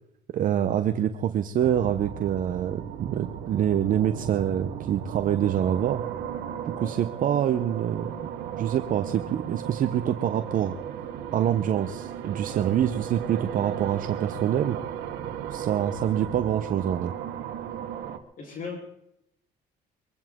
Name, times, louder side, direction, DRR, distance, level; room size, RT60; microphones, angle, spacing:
voice 1, 0.3-6.0 6.7-10.8 11.3-14.8 15.5-17.1, right 10 dB, 55° right, 8 dB, 0.9 m, -26 dB
sound 1, 1.6-18.2, right 9 dB, 90° right, 1.3 m, -36 dB
sound 2, 9.9-16.7, right 3 dB, 10° right, 3.5 m, -49 dB
voice 2, 18.4-18.8, left 4 dB, 55° left, 1 dB, 4.5 m, -37 dB
23.0 x 15.5 x 3.7 m, 0.79 s
cardioid pair, 110°, 17 cm